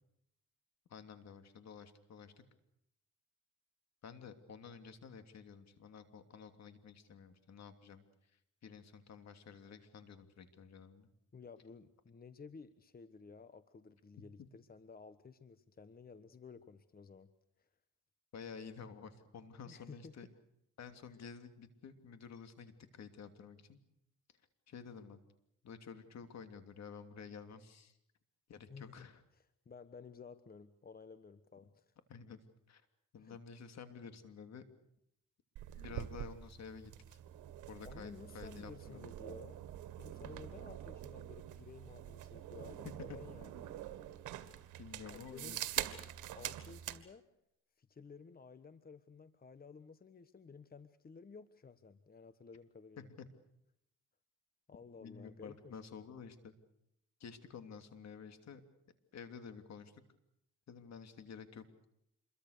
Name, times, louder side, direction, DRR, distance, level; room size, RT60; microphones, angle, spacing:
voice 1, 0.9-2.4 4.0-11.1 14.4-14.5 18.3-20.3 20.8-23.8 24.7-25.2 25.6-28.0 28.5-29.2 32.1-32.4 32.7-32.8 33.1-34.6 35.7-37.2 37.7-39.1 42.8-43.2 44.8-45.7 53.0-53.3 55.0-56.5 57.2-58.6 59.1-60.0 60.7-61.7, left 6 dB, 60° left, 8 dB, 3.0 m, -51 dB
voice 2, 11.3-17.3 17.6-17.7 19.7-20.2 28.7-29.1 29.6-31.9 33.2-33.4 37.8-39.6 40.0-43.7 45.1-45.6 46.3-47.2 47.8-53.1 54.7-55.8, left 5 dB, 30° left, 12 dB, 1.2 m, -54 dB
sound 1, 35.6-47.0, right 12 dB, 90° right, 1.9 m, -45 dB
27.0 x 22.5 x 6.7 m, 0.78 s
cardioid pair, 90°, 30 cm